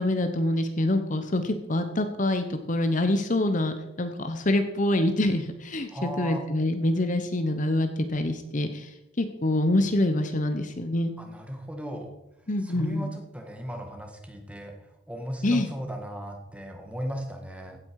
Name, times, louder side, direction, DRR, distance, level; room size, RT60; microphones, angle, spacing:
voice 1, 0.0-11.1 12.5-13.1 15.4-15.7, left 1 dB, 40° left, 8 dB, 0.9 m, -26 dB
voice 2, 5.9-6.4 11.2-12.1 12.6-17.8, equal, 5° right, 3 dB, 1.8 m, -36 dB
16.0 x 9.4 x 4.8 m, 0.92 s
head